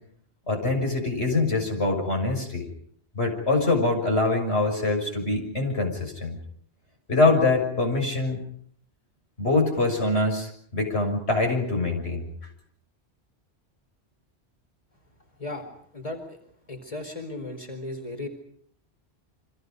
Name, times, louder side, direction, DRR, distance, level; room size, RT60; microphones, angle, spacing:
voice 1, 0.5-2.7 3.1-6.4 7.1-8.4 9.4-12.2, left 2 dB, 85° left, 3 dB, 6.8 m, -24 dB
voice 2, 15.9-16.4 16.7-18.3, left 2 dB, 35° left, 4 dB, 4.5 m, -35 dB
29.0 x 26.0 x 5.3 m, 0.64 s
omnidirectional pair, 1.1 m